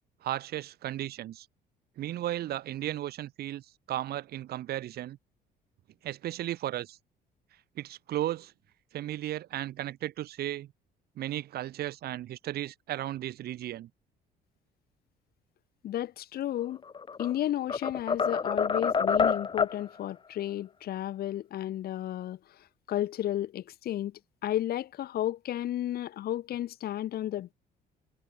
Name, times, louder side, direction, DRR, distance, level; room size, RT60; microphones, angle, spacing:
voice 1, 0.2-1.5 2.0-3.6 3.9-5.2 6.0-7.0 7.8-8.5 8.9-10.7 11.2-13.9, right 13 dB, 70° right, 3.7 m, -35 dB
voice 2, 15.8-16.8 17.2-22.4 22.9-24.1 24.4-27.5, left 12 dB, 65° left, 5.3 m, -32 dB
sound 1, 16.8-17.3 17.7-19.8, left 5 dB, 30° left, 2.2 m, -27 dB
cardioid pair, 110°, 17 cm